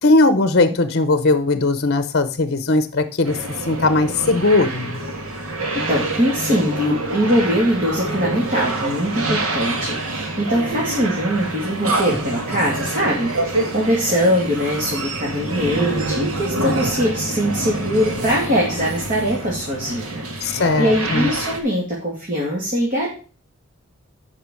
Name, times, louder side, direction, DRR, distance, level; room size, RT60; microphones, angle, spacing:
voice 1, 0.0-5.0 20.4-21.3, left 2 dB, 50° left, 12 dB, 0.8 m, -18 dB
sound 1, 3.2-21.6, right 2 dB, 80° right, 1.7 m, -26 dB
voice 2, 5.9-23.1, equal, 40° right, -4 dB, 2.3 m, -22 dB
8.4 x 5.6 x 6.2 m, 0.37 s
head